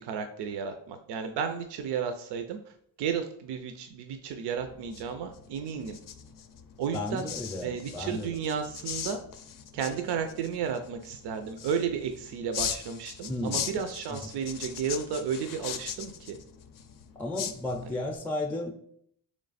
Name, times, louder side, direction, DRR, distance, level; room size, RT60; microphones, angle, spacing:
voice 1, 0.0-2.6 3.0-6.0 6.8-7.3 7.6-9.2 9.7-16.4, right 7 dB, 85° right, 7 dB, 0.5 m, -33 dB
sound 1, 4.6-18.2, left 8 dB, 55° left, 0.5 m, -40 dB
voice 2, 6.9-8.4 13.3-13.7 17.2-18.7, left 2 dB, 5° left, 3 dB, 0.5 m, -33 dB
3.2 x 3.1 x 4.0 m, 0.67 s
cardioid pair, 90°, 40 cm